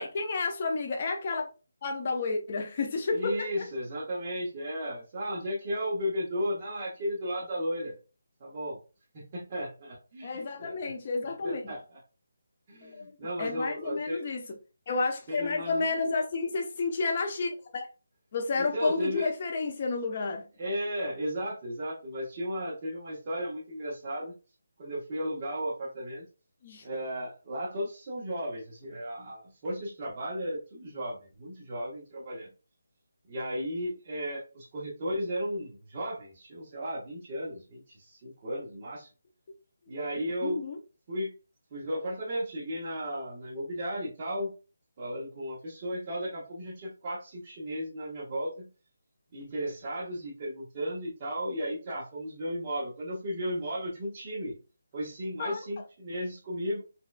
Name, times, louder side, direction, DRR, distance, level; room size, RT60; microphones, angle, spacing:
voice 1, 0.0-1.5 1.8-3.6 10.2-11.7 12.8-13.1 13.4-14.4 14.9-17.9 18.3-20.4 26.6-26.8 40.4-40.8 55.4-55.6, left 3 dB, 25° left, 0.3 m, -31 dB
voice 2, 3.1-7.9 8.4-8.8 9.1-10.7 11.4-11.8 12.7-14.2 15.3-15.8 18.6-19.3 20.6-24.3 24.8-26.2 26.8-32.5 33.3-39.1 39.9-40.6 41.1-41.3 41.7-44.5 45.0-48.7 49.3-54.6 54.9-56.8, equal, 20° right, 0.7 m, -34 dB
4.2 x 2.2 x 2.3 m
hypercardioid pair, 180°, 0 cm